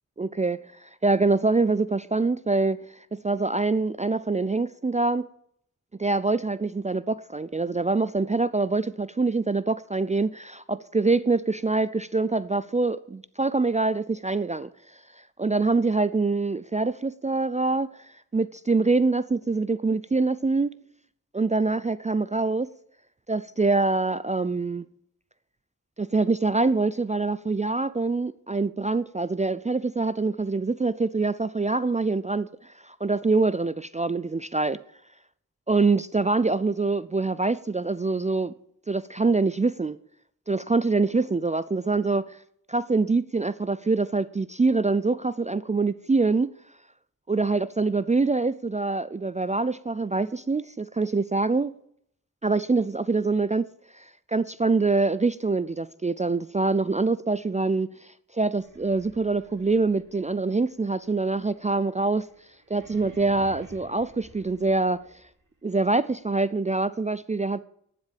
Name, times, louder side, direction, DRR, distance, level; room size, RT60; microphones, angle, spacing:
voice 1, 0.2-2.8 3.1-5.3 6.0-14.7 15.4-17.9 18.3-20.7 21.3-22.7 23.3-24.8 26.0-34.8 35.7-38.5 38.9-40.0 40.5-42.4 42.7-46.5 47.3-51.7 52.4-53.7 53.9-62.3 62.7-65.0 65.6-67.6, right 3 dB, 25° right, 0.4 m, -25 dB
sound 1, 58.5-65.4, right 2 dB, 70° right, 3.0 m, -52 dB
10.5 x 7.6 x 8.4 m
wide cardioid pair, 75°, 32 cm